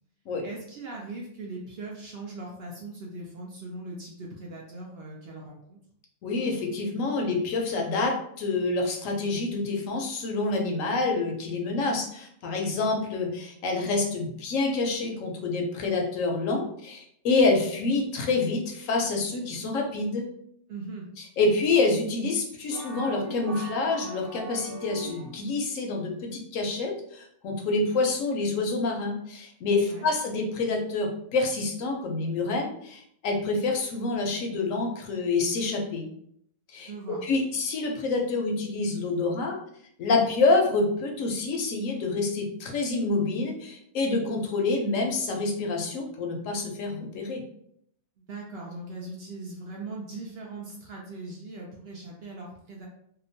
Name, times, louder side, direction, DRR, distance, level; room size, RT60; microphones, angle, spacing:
voice 1, 0.4-5.8 20.7-21.1 29.9-30.1 36.8-37.2 48.3-52.9, right 2 dB, 65° right, -2 dB, 0.6 m, -40 dB
voice 2, 6.2-20.3 21.2-36.1 36.7-39.6 40.0-47.4, left 3 dB, 75° left, 2 dB, 1.0 m, -27 dB
sound 1, 22.7-25.6, right 2 dB, 45° right, 1.0 m, -40 dB
2.8 x 2.1 x 2.6 m, 0.69 s
omnidirectional pair, 1.4 m